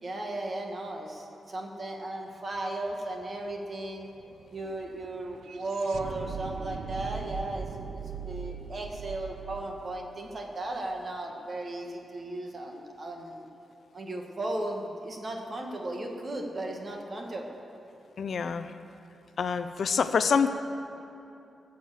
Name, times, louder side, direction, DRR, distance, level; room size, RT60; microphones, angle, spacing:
voice 1, 0.0-4.1 4.5-7.7 8.2-13.4 13.9-17.6, right 2 dB, 30° right, 1 dB, 1.5 m, -36 dB
sound 1, 2.5-2.6 2.9-11.1, right 6 dB, 85° right, 0.7 m, -41 dB
voice 2, 18.2-18.7 19.4-20.5, left 6 dB, 55° left, 10 dB, 0.5 m, -26 dB
17.0 x 7.2 x 7.5 m, 2.7 s
wide cardioid pair, 175°, 0 cm